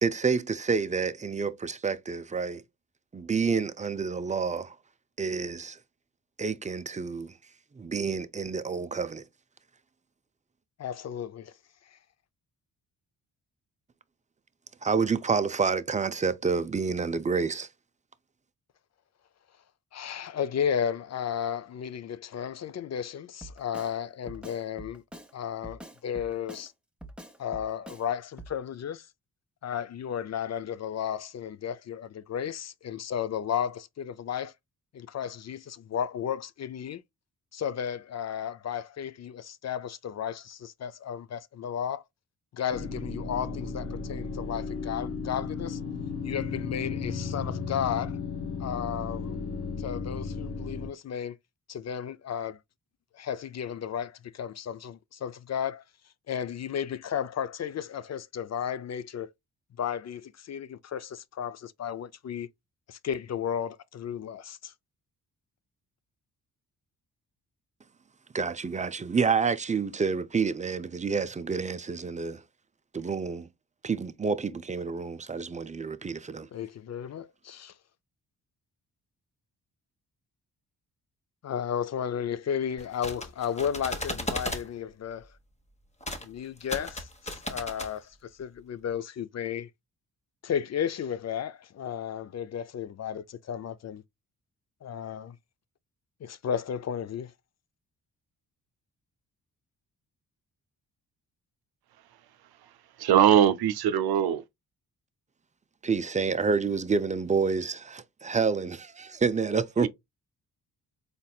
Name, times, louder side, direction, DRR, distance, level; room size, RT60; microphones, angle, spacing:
voice 1, 0.0-2.6 3.1-4.8 5.2-5.8 6.4-7.3 7.7-9.2 14.8-17.7 68.3-72.4 72.9-73.5 73.8-76.5 105.8-109.9, right 5 dB, 20° right, 0.5 m, -28 dB
voice 2, 10.8-11.5 11.9-12.0 19.9-25.0 25.3-26.7 27.4-29.1 29.6-34.5 34.9-37.0 37.5-42.0 42.5-45.8 46.2-48.2 48.6-49.4 49.8-51.4 51.7-52.6 53.1-55.8 56.3-59.3 59.8-62.5 62.9-64.7 76.5-77.7 81.4-85.3 86.2-89.7 90.4-94.0 94.8-95.4 96.2-97.3, left 8 dB, 45° left, 0.4 m, -33 dB
Drum kit, 23.4-23.9 24.3-25.3 25.6-26.7 27.0-28.1 28.4-28.6, right 1 dB, 5° right, 1.1 m, -45 dB
sound 1, 42.7-50.9, left 4 dB, 80° left, 1.2 m, -34 dB
sound 2, 82.8-84.7 86.0-86.3 86.6-87.9, left 1 dB, 15° left, 1.2 m, -35 dB
voice 3, 103.0-104.4 109.8-109.9, right 10 dB, 70° right, 0.6 m, -21 dB
4.1 x 3.3 x 2.3 m
supercardioid pair, 55°, 39 cm